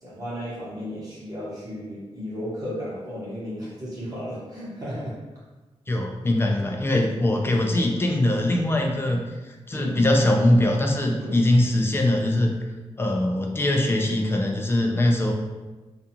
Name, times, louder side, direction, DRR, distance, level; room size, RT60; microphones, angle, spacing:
voice 1, 0.0-5.2 9.7-9.9 11.1-11.4, equal, 30° right, -8 dB, 1.0 m, -34 dB
voice 2, 5.9-9.2 9.4-12.5 13.0-15.3, left 1 dB, 20° left, 1 dB, 0.3 m, -22 dB
2.4 x 2.3 x 2.8 m, 1.2 s
wide cardioid pair, 130°, 11 cm